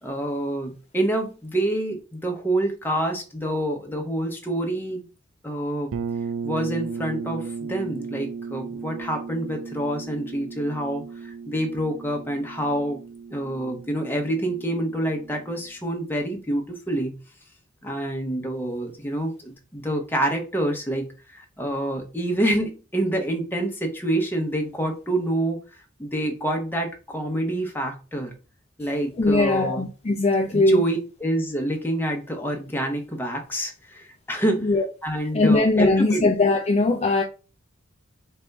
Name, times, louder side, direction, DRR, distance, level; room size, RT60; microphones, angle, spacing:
voice 1, 0.0-5.0 5.4-5.9 6.4-13.0 13.3-17.2 17.8-25.6 26.0-28.3 28.8-29.8 30.5-34.7 35.0-36.3, right 1 dB, 10° left, 0.8 m, -27 dB
sound 1, 5.9-15.6, right 5 dB, 85° right, 0.5 m, -35 dB
voice 2, 29.2-30.8 34.6-34.9 35.3-37.2, left 2 dB, 30° left, 0.4 m, -20 dB
4.2 x 2.5 x 3.4 m
head